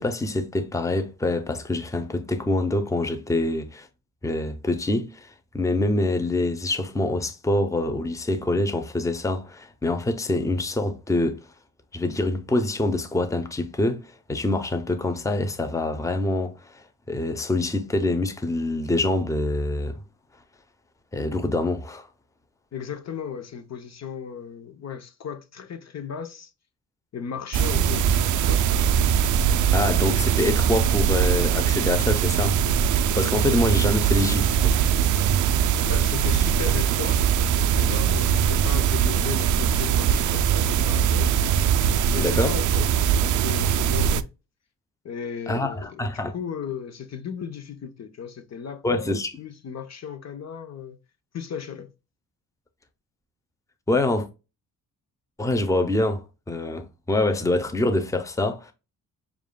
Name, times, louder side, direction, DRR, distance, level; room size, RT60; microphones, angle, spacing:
voice 1, 0.0-3.9 4.2-11.5 11.9-20.0 21.1-22.1 29.7-32.6 33.1-34.8 42.1-42.6 45.5-46.3 48.8-49.3 53.9-54.3 55.4-58.7, left 2 dB, 10° left, 0.7 m, -25 dB
voice 2, 22.7-26.5 27.1-28.9 35.9-37.2 37.7-41.3 42.1-44.3 45.0-51.0 51.3-51.9, left 7 dB, 50° left, 0.7 m, -36 dB
sound 1, 27.5-44.2, right 8 dB, 60° right, 0.4 m, -21 dB
7.0 x 2.5 x 2.2 m
cardioid pair, 75°, 35 cm